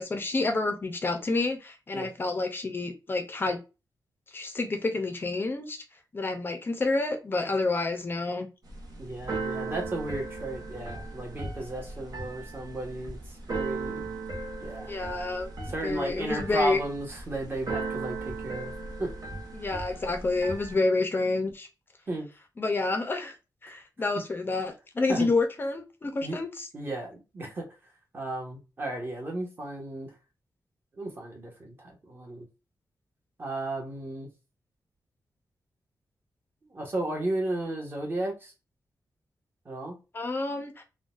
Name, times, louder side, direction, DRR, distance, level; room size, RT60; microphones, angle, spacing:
voice 1, 0.0-3.6 4.3-5.8 6.1-8.5 14.8-15.5 15.8-16.8 19.5-21.7 22.6-23.3 23.6-26.7 40.1-40.8, left 3 dB, 30° left, 5 dB, 0.5 m, -29 dB
Keyboard (musical), 8.6-20.8, right 3 dB, 60° right, 0.9 m, -37 dB
voice 2, 9.0-14.1 14.6-14.9 15.7-18.7 19.0-19.1 22.1-22.3 25.1-25.3 26.2-26.4 26.7-27.7 28.1-30.1 30.9-32.5 33.4-34.3 36.7-38.5 39.6-40.0, right 2 dB, 30° right, 0 dB, 1.0 m, -34 dB
3.8 x 2.2 x 2.4 m, 0.29 s
wide cardioid pair, 175°, 7 cm